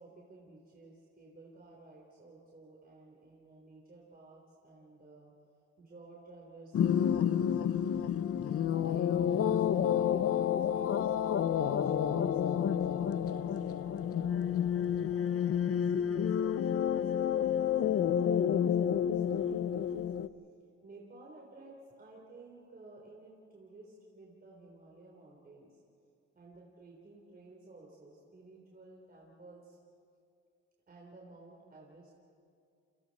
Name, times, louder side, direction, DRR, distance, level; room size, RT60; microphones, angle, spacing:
voice 1, 0.0-5.3 5.8-8.2 8.7-11.1 11.6-14.5 15.1-20.1 20.8-25.8 26.4-29.8 30.9-32.1, right 2 dB, 30° right, -3 dB, 3.8 m, -54 dB
sound 1, 6.7-20.3, left 9 dB, 50° left, 0.7 m, -29 dB
sound 2, 8.1-14.2, left 11 dB, 70° left, 4.7 m, -56 dB
29.5 x 25.5 x 4.3 m, 2.4 s
cardioid pair, 90°, 30 cm